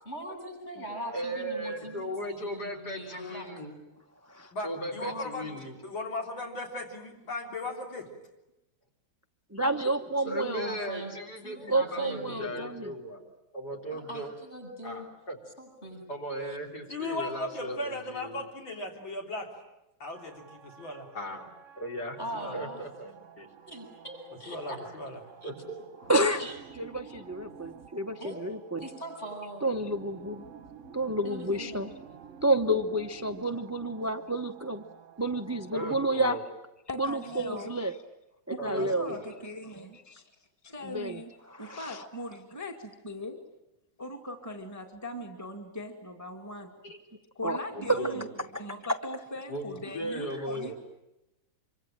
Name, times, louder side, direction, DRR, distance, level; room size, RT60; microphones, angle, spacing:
voice 1, 0.1-3.5 5.0-5.5 9.6-9.8 10.2-11.2 11.4-12.7 13.9-15.1 15.6-16.1 16.4-16.6 22.2-22.8 23.7-24.8 25.4-25.5 26.2-26.6 28.2-28.4 28.8-29.7 31.2-31.8, right 1 dB, 30° left, 3 dB, 8.4 m, -41 dB
voice 2, 1.1-3.8 4.6-5.8 9.8-9.9 10.2-13.2 13.5-14.3 14.8-15.4 16.1-18.5 21.1-21.5 21.8-22.2 22.5-23.5 25.4-25.8 35.7-36.4 38.6-39.4 39.7-39.9 46.8-47.0 47.7-48.3 49.5-50.7, equal, 55° left, 1 dB, 4.3 m, -37 dB
voice 3, 4.5-8.1 16.9-19.5 20.0-21.1 22.3-22.6 24.5-25.2, left 2 dB, 85° left, 1 dB, 4.4 m, -37 dB
voice 4, 9.5-10.8 11.7-12.9 26.1-26.5 26.8-28.9 29.6-30.4 30.9-31.9 32.4-34.8 35.2-36.4 37.0-37.9 38.6-39.1 40.8-41.2 41.5-42.0 47.4-47.6 47.9-48.0 48.9-49.0, right 1 dB, 20° right, 8 dB, 0.4 m, -29 dB
sound 1, 20.1-36.4, right 7 dB, 45° right, 1.3 m, -51 dB
voice 5, 36.9-37.9 38.5-40.2 40.6-41.3 41.6-43.4 44.0-46.7 47.4-48.3 48.5-50.7, left 1 dB, 10° left, 3 dB, 2.2 m, -40 dB
26.0 x 24.5 x 9.0 m, 0.92 s
omnidirectional pair, 2.1 m